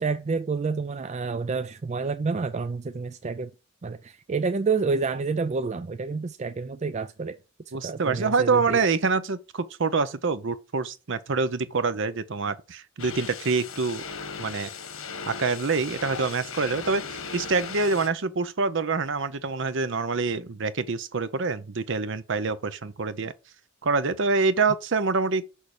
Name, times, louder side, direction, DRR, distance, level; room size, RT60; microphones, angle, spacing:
voice 1, 0.0-3.5 3.8-7.4 7.8-8.8, right 4 dB, 35° right, 0.4 m, -29 dB
voice 2, 7.7-14.0 14.4-14.7 15.3-23.3 23.8-25.4, right 4 dB, 60° right, 0.7 m, -26 dB
sound 1, 13.0-18.1, left 5 dB, 85° left, 1.7 m, -37 dB
6.4 x 5.7 x 4.9 m
head